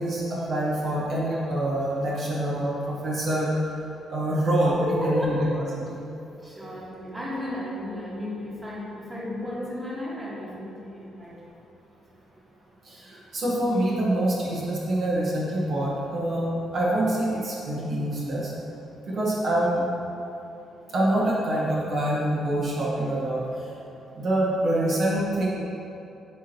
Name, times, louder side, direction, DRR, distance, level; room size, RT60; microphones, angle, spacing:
voice 1, 0.0-3.5 4.1-5.4 5.9-6.0 12.8-18.5 19.1-19.8 20.9-23.7 24.2-25.5, right 1 dB, 60° right, -6 dB, 1.2 m, -25 dB
voice 2, 4.8-5.5 6.4-11.5, left 1 dB, 20° right, -6 dB, 1.5 m, -33 dB
8.1 x 4.3 x 2.9 m, 2.9 s
cardioid pair, 90°, 0 cm